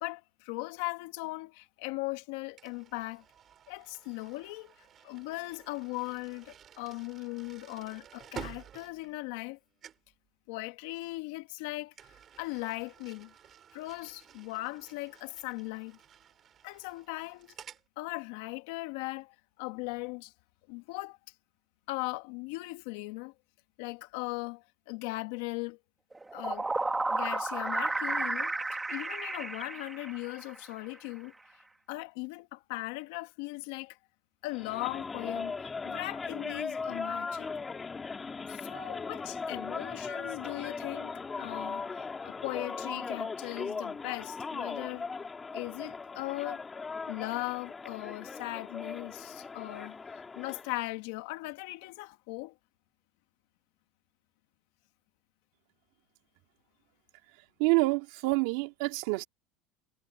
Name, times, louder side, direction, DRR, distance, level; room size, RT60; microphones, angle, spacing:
voice 1, 0.0-3.2 3.7-4.7 5.0-9.6 10.5-11.9 12.4-13.3 13.7-16.0 16.6-17.6 18.0-20.3 20.7-21.2 21.9-23.3 23.8-25.8 26.3-26.7 27.1-28.5 28.9-31.3 31.9-34.0 34.4-37.5 38.5-45.1 45.5-46.6 47.1-52.6, left 22 dB, 70° left, 1.9 m, -38 dB
sound 1, 2.6-9.6 9.8-10.1 11.9-17.9, right 9 dB, 30° right, 5.5 m, -52 dB
sound 2, 26.1-30.6, right 2 dB, 10° right, 1.7 m, -32 dB
sound 3, 34.5-50.7, left 4 dB, 15° left, 3.3 m, -38 dB
voice 2, 57.6-59.3, right 25 dB, 65° right, 3.2 m, -27 dB
supercardioid pair, 160°, 0 cm